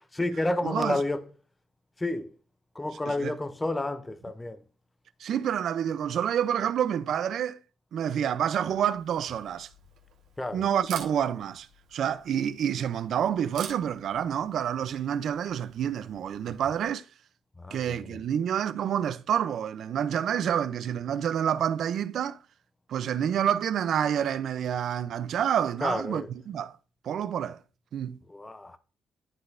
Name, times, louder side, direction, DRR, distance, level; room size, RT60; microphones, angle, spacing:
voice 1, 0.1-1.3 2.0-2.3 2.7-4.6 10.4-10.6 17.6-18.0 25.8-26.3 28.3-28.8, left 2 dB, 15° left, 0.5 m, -30 dB
voice 2, 0.6-1.0 3.1-3.3 5.2-7.6 7.9-9.7 10.5-17.1 17.7-22.4 22.9-26.7 27.0-27.6 27.9-28.2, right 9 dB, 65° right, 0.4 m, -28 dB
Camera, 8.5-16.8, right 7 dB, 85° right, 1.3 m, -49 dB
11.5 x 4.0 x 2.5 m
cardioid pair, 90°, 0 cm